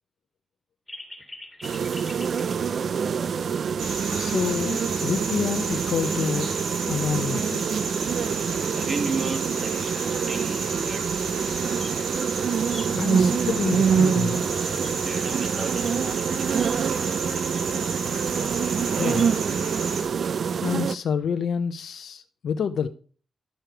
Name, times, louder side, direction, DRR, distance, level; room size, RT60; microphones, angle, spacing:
sound 1, 0.9-3.1 3.5-3.6 4.0-4.1 5.4-5.5 6.0-6.1 6.5-6.6 6.8-9.8 10.2-11.4 11.7-12.2 12.5-13.4 13.9-14.0 14.2-14.3 14.6-17.6, left 1 dB, 5° left, 2.6 m, -45 dB
sound 2, 1.6-20.9, right 6 dB, 60° right, 0.3 m, -26 dB
voice 1, 3.3-3.7 4.1-6.6 6.9-7.6 12.9-14.4 19.0-19.3 20.6-22.9, left 7 dB, 70° left, 0.7 m, -28 dB
sound 3, 3.8-20.0, right 4 dB, 85° right, 3.1 m, -32 dB
voice 2, 8.7-11.5 15.0-17.5 18.8-19.3, right 4 dB, 45° right, 1.8 m, -35 dB
11.5 x 6.6 x 4.5 m
cardioid pair, 100°, 0 cm